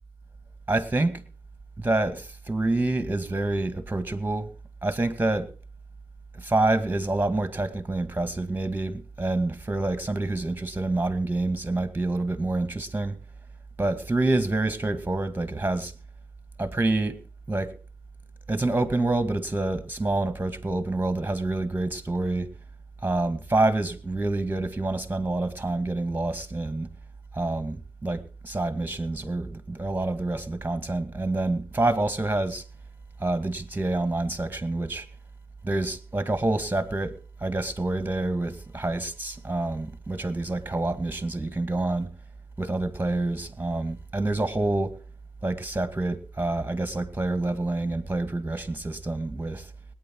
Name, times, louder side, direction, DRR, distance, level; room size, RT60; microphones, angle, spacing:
voice 1, 0.7-1.2 1.8-4.5 4.8-5.5 6.3-13.2 13.8-15.9 16.6-17.2 17.5-17.7 18.5-22.5 23.0-26.9 27.3-32.7 33.2-35.1 35.6-42.1 42.6-45.0 45.4-49.7, right 2 dB, 20° right, 2.1 m, -27 dB
18.5 x 9.5 x 4.7 m
supercardioid pair, 45°, 10 cm